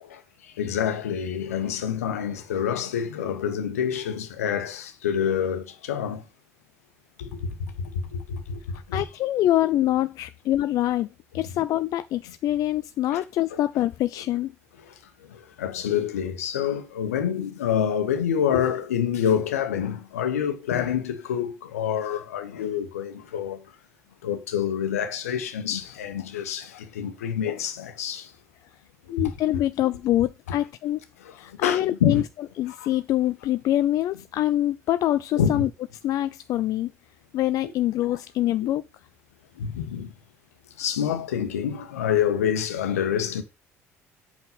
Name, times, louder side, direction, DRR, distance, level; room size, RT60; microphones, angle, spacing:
voice 1, 0.1-6.2 7.2-8.6 8.9-9.1 13.1-13.2 13.5-13.6 14.9-15.0 15.3-23.6 24.2-28.3 29.1-29.2 31.2-32.2 32.8-32.9 35.4-35.7 39.6-40.1 40.8-43.4, left 8 dB, 75° left, 1.3 m, -27 dB
voice 2, 8.9-11.1 11.3-14.5 29.1-31.0 31.3-32.2 32.6-35.7 36.0-36.9 37.3-38.8, left 13 dB, 50° left, 0.5 m, -25 dB
8.1 x 5.9 x 5.3 m
figure-of-eight pair, 60°, 8 cm